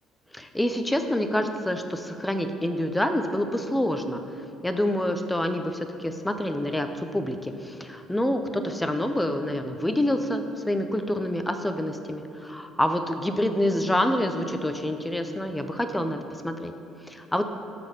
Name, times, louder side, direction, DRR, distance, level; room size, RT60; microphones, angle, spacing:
voice 1, 0.3-4.2 4.6-16.2 16.4-16.7 17.1-17.5, left 1 dB, 5° left, 7 dB, 0.4 m, -27 dB
11.0 x 4.2 x 6.6 m, 2.9 s
cardioid pair, 175°, 0 cm